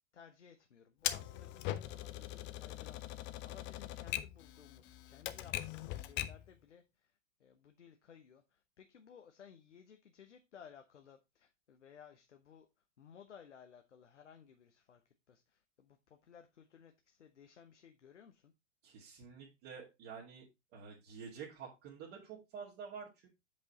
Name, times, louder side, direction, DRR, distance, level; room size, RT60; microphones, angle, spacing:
voice 1, 0.1-12.7 13.0-18.5, left 7 dB, 75° left, 1.0 m, -59 dB
Typewriter, 1.0-6.5, left 14 dB, 30° left, 0.7 m, -41 dB
voice 2, 18.8-20.5 20.7-23.3, right 6 dB, 40° right, 2.3 m, -49 dB
7.9 x 5.4 x 4.0 m
figure-of-eight pair, 95°, 36 cm